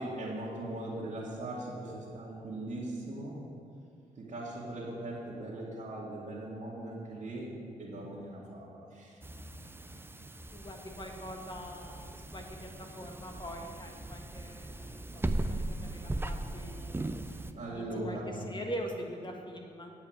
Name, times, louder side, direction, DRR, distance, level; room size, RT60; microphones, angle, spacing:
voice 1, 0.0-3.4 4.2-7.5 7.8-9.2 17.5-18.5, right 1 dB, 50° right, -8 dB, 2.2 m, -39 dB
sound 1, 9.2-17.5, right 2 dB, 15° right, 0.6 m, -38 dB
voice 2, 10.5-19.9, equal, 30° left, 2 dB, 1.8 m, -43 dB
8.9 x 5.5 x 7.8 m, 2.4 s
supercardioid pair, 50°, 16 cm